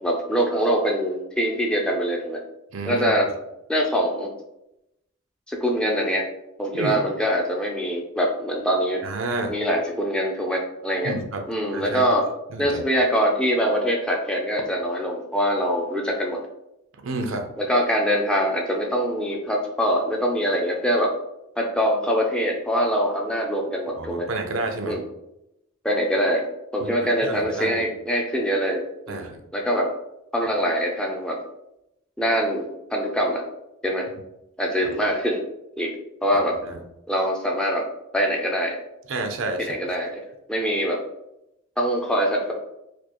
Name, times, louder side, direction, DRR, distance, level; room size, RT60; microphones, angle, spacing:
voice 1, 0.0-2.4 2.8-3.3 3.7-4.3 5.5-6.2 6.6-9.0 9.5-11.1 11.5-12.2 12.6-16.4 17.6-21.1 21.6-24.3 24.8-25.0 25.8-26.4 26.7-29.9 30.3-31.4 32.2-33.4 33.8-34.1 34.6-35.4 35.8-35.9 36.2-36.6 37.1-37.8 38.1-38.8 39.6-40.2 40.5-41.0 41.8-42.5, equal, 5° left, 0 dB, 0.4 m, -23 dB
voice 2, 2.7-3.1 6.7-7.0 9.0-9.5 11.0-11.4 11.7-12.1 12.5-12.8 17.0-17.5 24.0-25.0 26.8-27.8 29.1-29.4 34.8-35.0 36.6-36.8 39.1-39.8, right 2 dB, 70° right, 4 dB, 0.5 m, -30 dB
4.4 x 2.4 x 2.9 m, 0.86 s
head